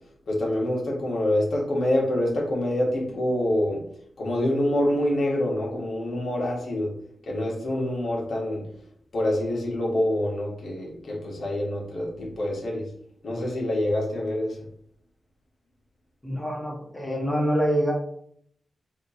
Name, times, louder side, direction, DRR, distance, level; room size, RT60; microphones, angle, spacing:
voice 1, 0.3-3.8 4.2-6.9 7.3-8.6 9.1-12.8 13.2-14.6, left 1 dB, 70° left, -2 dB, 1.7 m, -26 dB
voice 2, 16.2-17.9, equal, 15° left, -1 dB, 1.5 m, -25 dB
3.6 x 2.9 x 4.3 m, 0.66 s
cardioid pair, 55°, 0 cm